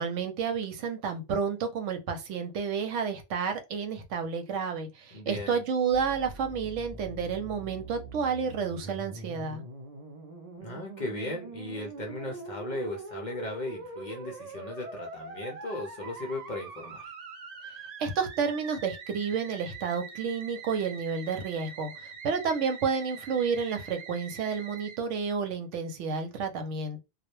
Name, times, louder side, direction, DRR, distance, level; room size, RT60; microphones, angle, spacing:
voice 1, 0.0-9.6 18.0-27.0, right 6 dB, 80° right, 0.9 m, -30 dB
voice 2, 5.1-5.6 10.6-17.1, left 1 dB, 50° left, 0.5 m, -37 dB
Musical instrument, 5.9-25.0, right 3 dB, 50° right, 0.5 m, -44 dB
2.2 x 2.0 x 2.9 m
omnidirectional pair, 1.2 m